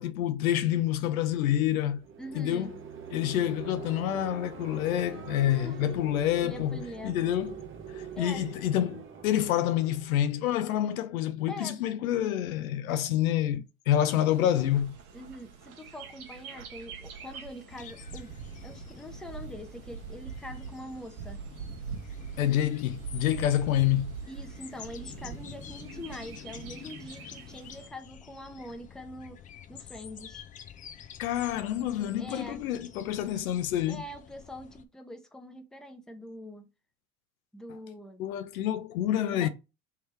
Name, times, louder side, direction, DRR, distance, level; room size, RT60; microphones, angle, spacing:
voice 1, 0.0-2.0 2.3-2.8 3.1-6.8 7.0-7.6 7.9-15.0 22.4-24.1 31.2-34.0 38.2-39.5, left 11 dB, 70° left, 0.6 m, -28 dB
sound 1, 1.9-10.9, right 7 dB, 30° right, 0.8 m, -44 dB
voice 2, 2.2-2.7 5.4-5.9 6.4-7.3 8.2-8.5 11.5-11.8 15.1-18.3 18.6-21.4 24.3-29.4 29.7-30.4 32.2-32.6 33.9-36.7 37.5-38.2 39.3-39.5, equal, ahead, 0.8 m, -43 dB
Bird, 14.2-27.9, right 6 dB, 75° right, 1.1 m, -43 dB
sound 2, 17.7-34.8, left 8 dB, 20° left, 0.4 m, -48 dB
3.5 x 3.1 x 4.5 m
hypercardioid pair, 75°, 44 cm